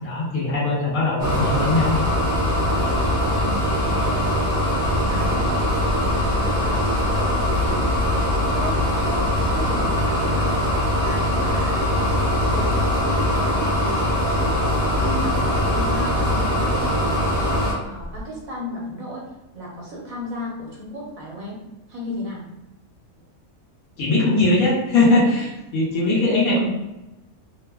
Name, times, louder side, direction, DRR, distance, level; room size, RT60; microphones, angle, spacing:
voice 1, 0.0-1.9 24.0-26.7, left 2 dB, 90° left, -7 dB, 1.3 m, -20 dB
sound 1, 1.2-17.7, left 1 dB, 25° right, 1.0 m, -21 dB
voice 2, 3.4-7.3 7.6-8.0 8.5-8.8 9.1-10.5 11.0-11.8 12.5-17.2 17.8-19.3 19.5-21.6 21.9-22.5, equal, 85° right, -3 dB, 1.3 m, -35 dB
Engine, 4.8-10.6 11.4-11.5 12.0-12.7 14.5-14.6 15.0-15.1 15.6-15.7 16.0-16.5 17.1-17.2 17.8-18.2, left 1 dB, 60° right, 0.8 m, -33 dB
3.4 x 2.0 x 2.3 m, 0.96 s
omnidirectional pair, 1.4 m